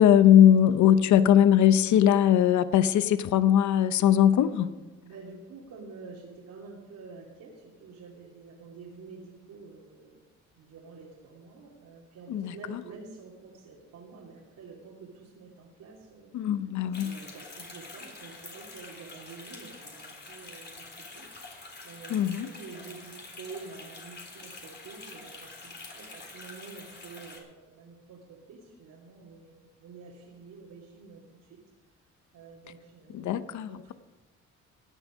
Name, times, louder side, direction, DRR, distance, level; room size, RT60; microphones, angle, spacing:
voice 1, 0.0-4.7 12.3-12.8 16.3-17.1 22.1-22.5 33.1-33.9, left 10 dB, 70° left, 13 dB, 0.7 m, -20 dB
voice 2, 5.0-10.2 10.6-16.3 17.0-21.3 21.8-22.2 22.4-31.6 32.3-33.9, right 4 dB, 75° right, -5 dB, 2.9 m, -48 dB
sound 1, 16.9-27.4, left 3 dB, 35° left, 3.9 m, -46 dB
16.5 x 10.0 x 5.1 m, 1.2 s
cardioid pair, 90°, 30 cm